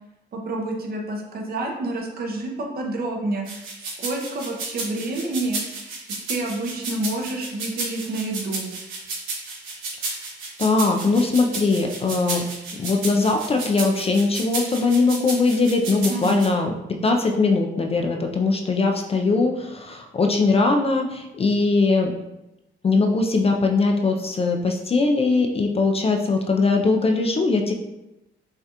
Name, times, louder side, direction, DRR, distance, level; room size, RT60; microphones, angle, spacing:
voice 1, 0.3-3.7 4.0-5.6 6.3-8.7 16.1-16.5, right 2 dB, 50° right, 0 dB, 0.9 m, -28 dB
sound 1, 3.5-16.5, right 3 dB, 85° right, 1.0 m, -32 dB
voice 2, 10.6-12.5 12.8-22.1 22.8-27.7, left 3 dB, 30° left, 3 dB, 0.4 m, -21 dB
5.6 x 2.4 x 2.8 m, 0.94 s
cardioid pair, 90°, 20 cm